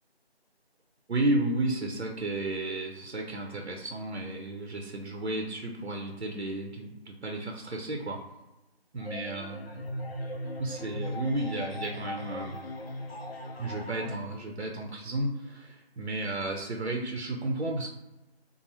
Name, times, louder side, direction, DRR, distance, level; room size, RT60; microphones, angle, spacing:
voice 1, 1.1-8.2 8.9-9.8 10.6-12.6 13.6-17.9, right 2 dB, 85° right, 2 dB, 0.6 m, -33 dB
sound 1, 9.0-14.2, left 1 dB, 65° left, 0.5 m, -38 dB
2.9 x 2.0 x 3.0 m, 0.98 s
figure-of-eight pair, 175°, 32 cm